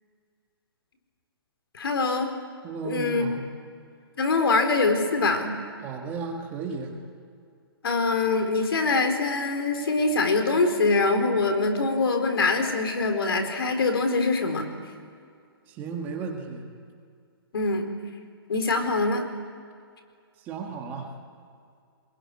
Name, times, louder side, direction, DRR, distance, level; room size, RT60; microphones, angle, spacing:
voice 1, 1.7-2.3 2.8-3.3 4.2-5.6 7.8-14.7 17.5-17.9 18.5-19.3, left 3 dB, 70° left, 6 dB, 4.3 m, -24 dB
voice 2, 2.6-3.5 5.8-6.9 15.7-16.7 20.4-21.1, right 5 dB, 15° right, 2 dB, 1.7 m, -34 dB
24.0 x 21.0 x 9.8 m, 2.3 s
hypercardioid pair, 175°, 13 cm